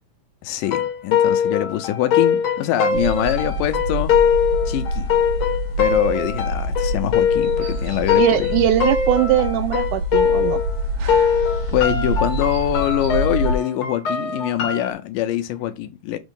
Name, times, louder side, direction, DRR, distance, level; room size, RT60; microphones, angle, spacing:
voice 1, 0.4-4.2 4.7-5.1 5.8-8.6 11.7-16.2, left 12 dB, 80° left, 2.2 m, -24 dB
sound 1, 0.6-10.8 11.1-14.9, left 7 dB, 65° left, 1.4 m, -22 dB
sound 2, 2.9-13.6, equal, 60° right, 2.3 m, -26 dB
voice 2, 8.2-10.6, right 12 dB, 80° right, 1.8 m, -20 dB
6.3 x 3.0 x 5.1 m
omnidirectional pair, 3.9 m